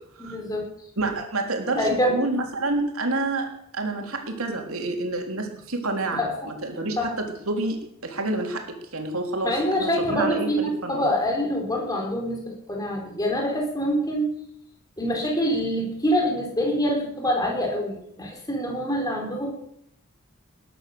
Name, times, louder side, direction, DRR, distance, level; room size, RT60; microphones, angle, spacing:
voice 1, 0.2-0.7 1.7-2.2 6.1-6.5 7.0-7.1 9.4-14.3 15.0-19.5, equal, 15° left, 1 dB, 4.2 m, -25 dB
voice 2, 1.0-3.5 3.7-11.0, right 2 dB, 80° right, 3 dB, 3.5 m, -28 dB
19.5 x 10.5 x 6.9 m, 0.73 s
head